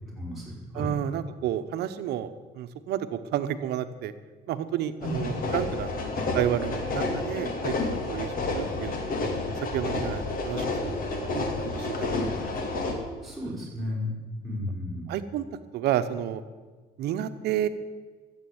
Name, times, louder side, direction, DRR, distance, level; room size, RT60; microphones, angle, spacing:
voice 1, 0.0-0.9 5.0-5.3 13.2-15.0, left 1 dB, ahead, -5 dB, 5.9 m, -33 dB
voice 2, 0.7-4.1 4.5-5.9 6.3-9.0 9.6-12.1 15.1-15.4 15.7-16.4 17.0-17.7, right 11 dB, 75° right, 11 dB, 1.0 m, -31 dB
sound 1, 5.0-12.9, left 2 dB, 55° left, 2.4 m, -30 dB
13.0 x 8.5 x 8.7 m, 1.4 s
cardioid pair, 110°, 17 cm